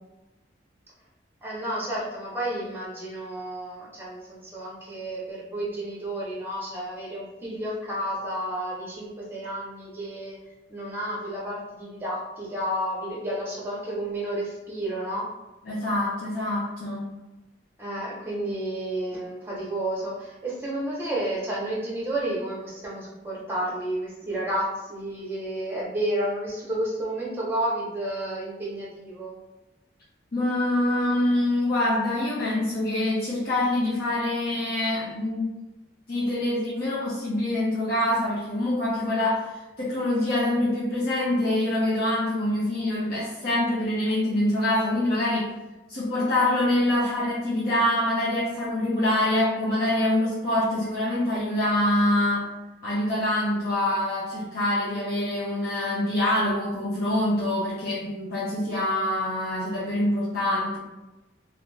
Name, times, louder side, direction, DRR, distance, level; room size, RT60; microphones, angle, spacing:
voice 1, 1.4-10.4 10.7-15.3 17.8-29.4, right 1 dB, 10° right, -5 dB, 0.8 m, -31 dB
voice 2, 15.6-17.1 30.3-35.5 36.1-39.5 39.8-45.5 45.9-52.5 52.8-60.8, left 1 dB, 50° left, -9 dB, 0.7 m, -25 dB
2.5 x 2.4 x 3.1 m, 1.0 s
head